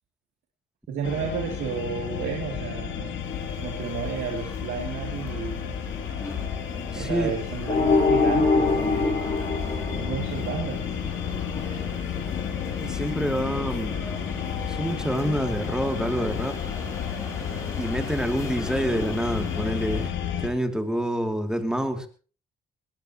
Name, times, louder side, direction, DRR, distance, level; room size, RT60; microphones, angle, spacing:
voice 1, 0.9-5.8 6.9-9.2 9.9-10.8, right 6 dB, 85° right, 1 dB, 2.8 m, -32 dB
sound 1, 1.0-20.5, left 8 dB, 75° left, 2.9 m, -32 dB
sound 2, 3.2-20.1, left 1 dB, 15° left, 6.4 m, -41 dB
voice 2, 6.9-7.3 12.8-14.0 14.7-16.6 17.8-22.1, equal, 5° right, 5 dB, 2.7 m, -27 dB
sound 3, 7.7-10.7, left 3 dB, 40° left, 4.7 m, -23 dB
19.5 x 19.5 x 3.0 m, 0.38 s
cardioid pair, 90°, 20 cm